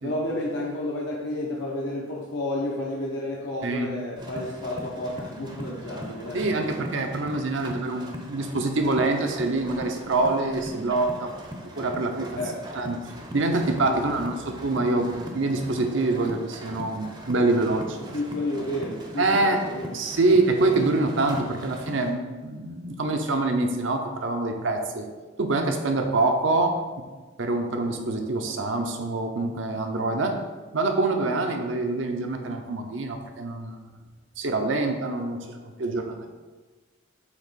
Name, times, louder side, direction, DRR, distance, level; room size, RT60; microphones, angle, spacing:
voice 1, 0.0-6.7 12.3-12.6 13.9-14.4 18.0-19.9, left 1 dB, 70° left, -4 dB, 0.8 m, -31 dB
sound 1, 4.2-22.1, equal, 20° right, 0.6 m, -40 dB
voice 2, 6.3-11.3 11.8-12.4 12.7-13.0 13.3-18.0 19.2-19.6 19.9-25.1 25.4-26.8 27.4-30.4 30.7-33.8 34.4-36.3, right 2 dB, 70° right, 4 dB, 0.7 m, -25 dB
8.1 x 3.0 x 4.1 m, 1.3 s
head